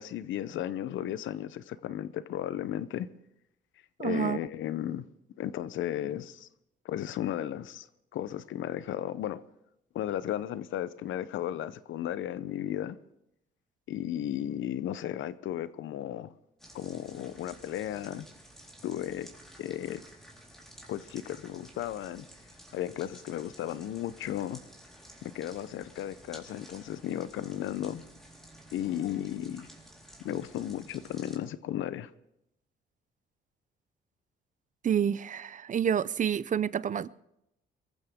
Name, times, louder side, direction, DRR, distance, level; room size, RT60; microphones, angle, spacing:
voice 1, 0.0-3.1 4.0-5.0 5.4-6.5 6.8-7.9 8.1-9.4 9.9-13.0 13.9-16.3 16.7-18.3 18.8-19.3 19.6-20.0 20.9-22.2 22.7-24.6 25.2-28.0 28.7-29.7 30.2-32.1, left 11 dB, 75° left, 0.8 m, -34 dB
voice 2, 4.0-4.4 34.8-37.1, right 8 dB, 40° right, 0.5 m, -28 dB
sound 1, 16.6-31.4, right 1 dB, ahead, 4.1 m, -53 dB
23.5 x 15.0 x 3.7 m
cardioid pair, 90°, 20 cm